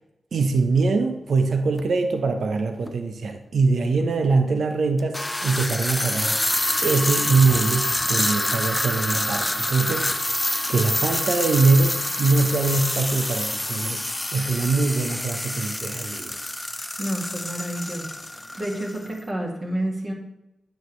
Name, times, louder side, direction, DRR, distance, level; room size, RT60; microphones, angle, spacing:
voice 1, 0.3-6.4 6.8-10.3 10.7-14.0 14.3-16.4, right 4 dB, 70° right, 6 dB, 0.8 m, -23 dB
sound 1, 1.7-1.9 2.9-3.0 5.0-19.1, left 1 dB, 15° left, 0.6 m, -27 dB
voice 2, 17.0-18.1 18.6-20.1, right 1 dB, 40° right, -2 dB, 2.0 m, -29 dB
9.2 x 6.4 x 3.3 m, 0.95 s
supercardioid pair, 40°, 0 cm